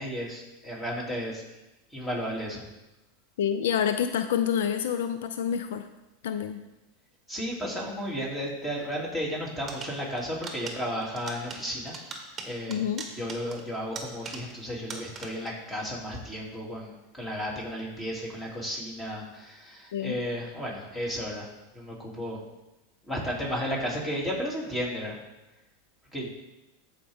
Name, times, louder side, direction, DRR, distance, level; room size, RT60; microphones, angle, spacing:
voice 1, 0.0-1.4 1.9-2.6 7.3-11.9 12.4-12.8 13.1-16.9 17.2-21.5 21.7-22.4 23.1-25.2 26.1-26.3, equal, 10° left, -3 dB, 2.8 m, -33 dB
voice 2, 3.4-5.9 6.2-6.6 12.7-13.0 19.9-20.2, left 8 dB, 80° left, 9 dB, 0.5 m, -27 dB
sound 1, 9.7-14.6 14.9-15.6, right 3 dB, 20° right, 1.4 m, -42 dB
13.5 x 5.0 x 3.6 m, 0.98 s
supercardioid pair, 120°, 0 cm